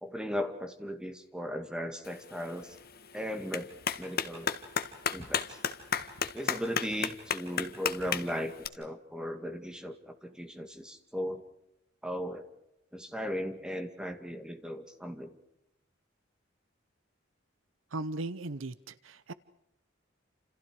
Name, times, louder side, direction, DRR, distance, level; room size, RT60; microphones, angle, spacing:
voice 1, 0.0-2.8 3.1-3.7 4.0-4.5 5.1-5.6 6.3-11.4 12.0-12.4 12.9-15.4, equal, 5° right, 7 dB, 2.4 m, -37 dB
Clapping, 2.0-8.7, left 7 dB, 50° left, 1.7 m, -35 dB
voice 2, 17.9-19.3, right 2 dB, 90° right, 15 dB, 0.9 m, -37 dB
29.5 x 28.0 x 4.9 m, 0.82 s
head